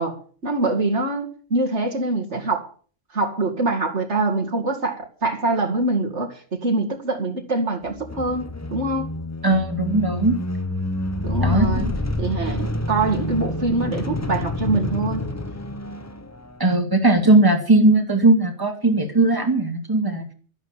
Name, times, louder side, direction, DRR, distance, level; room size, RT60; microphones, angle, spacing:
voice 1, 0.0-2.7 3.1-9.1 11.2-11.9 12.2-15.3, right 2 dB, 65° right, 3 dB, 2.5 m, -24 dB
sound 1, 7.9-16.6, left 1 dB, 15° left, 0.8 m, -28 dB
voice 2, 9.4-10.4 11.4-11.9 16.6-20.2, right 2 dB, 15° right, 3 dB, 2.7 m, -18 dB
12.5 x 11.5 x 7.3 m, 0.43 s
omnidirectional pair, 1.3 m